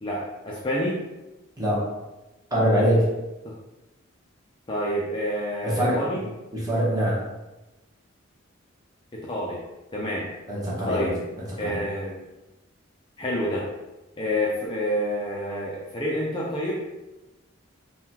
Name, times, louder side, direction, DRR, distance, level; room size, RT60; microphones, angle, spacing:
voice 1, 0.0-1.0 3.4-3.5 4.7-6.2 9.1-9.6 9.9-10.3 10.9-11.1 11.6-12.2 13.2-13.7 14.2-16.8, equal, 25° left, -5 dB, 0.4 m, -28 dB
voice 2, 1.6-1.9 2.5-3.1 5.6-6.0 6.5-7.2 10.5-11.1 11.4-11.8, equal, 15° right, -6 dB, 0.8 m, -23 dB
3.6 x 2.3 x 2.8 m, 1.0 s
head